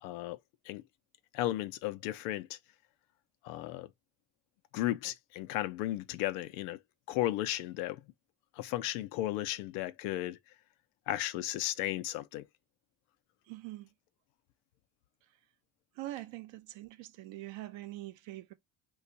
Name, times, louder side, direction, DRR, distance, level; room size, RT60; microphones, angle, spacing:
voice 1, 0.0-0.4 0.7-0.8 1.3-2.6 3.4-3.9 4.7-6.8 7.1-8.0 8.6-10.4 11.1-12.4, left 15 dB, 85° left, 0.5 m, -34 dB
voice 2, 13.5-13.9 16.0-18.5, right 16 dB, 65° right, 0.8 m, -43 dB
2.4 x 2.4 x 3.9 m
hypercardioid pair, 60°, 48 cm